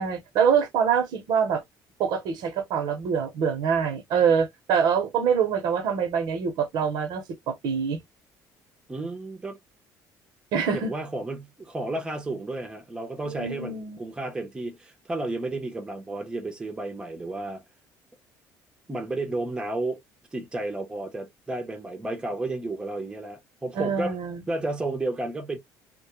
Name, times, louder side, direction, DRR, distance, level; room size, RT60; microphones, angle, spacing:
voice 1, 0.0-1.6 2.0-8.0 10.5-10.9 13.3-14.0 23.8-24.4, right 7 dB, 70° right, 0.7 m, -25 dB
voice 2, 8.9-9.6 10.7-17.6 18.9-20.0 20.3-24.1 24.5-25.6, right 2 dB, 10° right, 0.6 m, -32 dB
2.1 x 2.0 x 2.9 m
cardioid pair, 120°, 7 cm